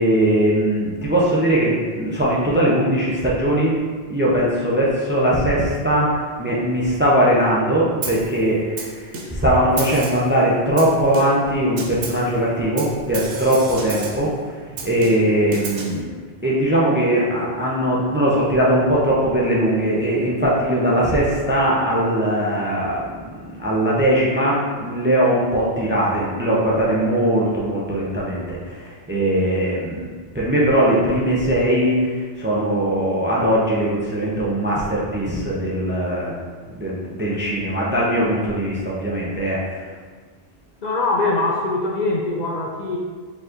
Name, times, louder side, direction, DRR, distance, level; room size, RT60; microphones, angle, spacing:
voice 1, 0.0-3.8 4.1-14.3 14.6-16.1 16.4-23.2 23.6-30.1 30.3-36.3 36.8-39.8, right 1 dB, 15° right, -5 dB, 0.4 m, -20 dB
Snare drum, 8.0-8.3 8.8-9.5 9.8-10.3 10.8-11.5 11.8-12.3 12.8-14.3 14.8-16.0, right 4 dB, 80° right, 1.0 m, -32 dB
voice 2, 40.8-43.0, left 2 dB, 55° left, -2 dB, 0.5 m, -22 dB
4.7 x 4.0 x 2.5 m, 1.5 s
omnidirectional pair, 1.2 m